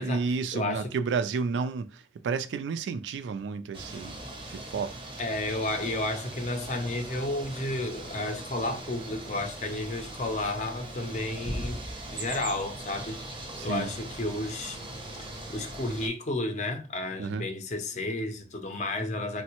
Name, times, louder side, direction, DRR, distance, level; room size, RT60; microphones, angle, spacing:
voice 1, 0.0-4.2 4.5-4.9 13.6-13.9 17.2-17.5, right 5 dB, 90° right, 0.3 m, -31 dB
voice 2, 0.5-0.9 5.2-11.8 12.1-14.8 15.5-19.4, left 2 dB, 40° left, 0.5 m, -32 dB
sound 1, 3.7-16.1, right 1 dB, 30° right, 0.5 m, -40 dB
3.4 x 2.1 x 2.8 m
head